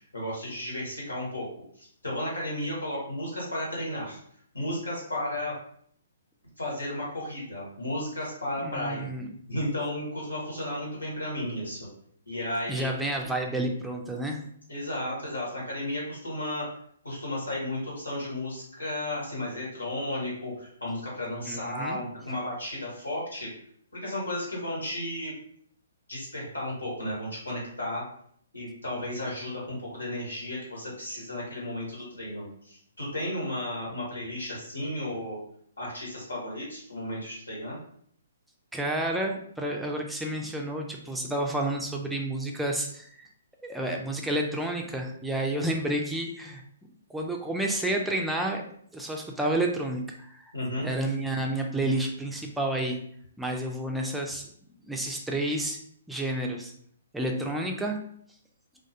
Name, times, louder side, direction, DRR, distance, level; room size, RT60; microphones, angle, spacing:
voice 1, 0.1-1.5 1.8-4.2 4.5-5.5 6.6-9.1 9.5-11.9 12.3-13.3 14.7-16.7 17.0-23.5 24.0-25.3 26.1-28.0 28.5-35.4 35.8-37.8 50.5-50.9, left 1 dB, 90° left, -4 dB, 1.2 m, -33 dB
voice 2, 8.6-9.3 12.7-14.4 21.5-22.0 38.7-43.3 43.6-46.6 47.1-48.6 48.9-50.5 50.8-53.0 53.4-54.5 54.8-55.8 56.1-56.7 57.1-58.0, right 1 dB, 5° right, 1 dB, 0.4 m, -30 dB
2.3 x 2.2 x 2.7 m, 0.64 s
figure-of-eight pair, 130°, 0 cm